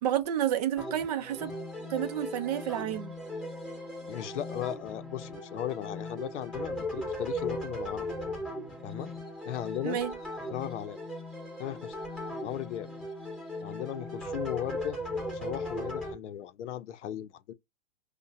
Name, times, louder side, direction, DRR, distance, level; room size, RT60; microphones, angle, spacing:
voice 1, 0.0-1.5 1.9-3.1 9.8-10.1, right 11 dB, 35° right, 0.5 m, -30 dB
sound 1, 0.8-16.1, left 1 dB, ahead, 1.9 m, -38 dB
voice 2, 4.1-8.1 8.8-9.1 9.5-10.0 10.5-11.0 11.6-11.9 12.4-12.9 13.6-15.0 15.3-17.5, left 11 dB, 85° left, 0.6 m, -37 dB
5.4 x 2.1 x 2.5 m
hypercardioid pair, 150°, 35 cm